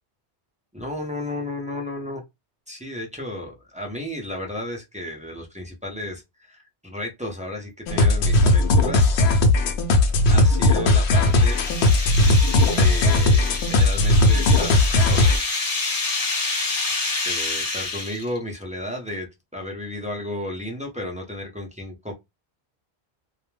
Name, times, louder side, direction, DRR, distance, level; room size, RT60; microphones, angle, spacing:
voice 1, 0.7-2.2 2.7-9.1 10.3-11.6 12.7-15.3 17.2-22.1, left 1 dB, 10° right, 0.5 m, -33 dB
sound 1, 7.9-15.4, left 2 dB, 80° left, 0.8 m, -18 dB
sound 2, 10.6-18.4, left 3 dB, 40° left, 0.7 m, -28 dB
2.3 x 2.1 x 3.1 m
omnidirectional pair, 1.1 m